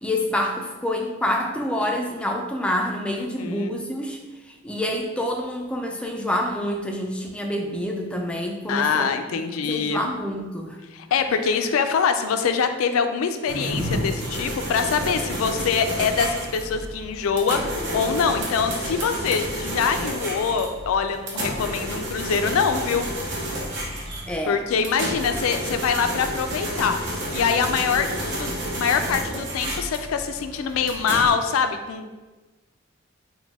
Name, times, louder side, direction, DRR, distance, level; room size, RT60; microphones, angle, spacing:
voice 1, 0.0-4.2 4.6-9.1 9.6-10.8 24.3-24.6, left 1 dB, 5° left, 1 dB, 0.3 m, -27 dB
voice 2, 3.2-3.7 8.7-10.0 10.9-23.1 24.5-27.0 27.3-28.5 28.7-32.1, left 6 dB, 85° left, 8 dB, 0.3 m, -24 dB
sound 1, 13.5-31.3, right 1 dB, 55° right, 0.7 m, -30 dB
4.0 x 2.1 x 3.4 m, 1.2 s
head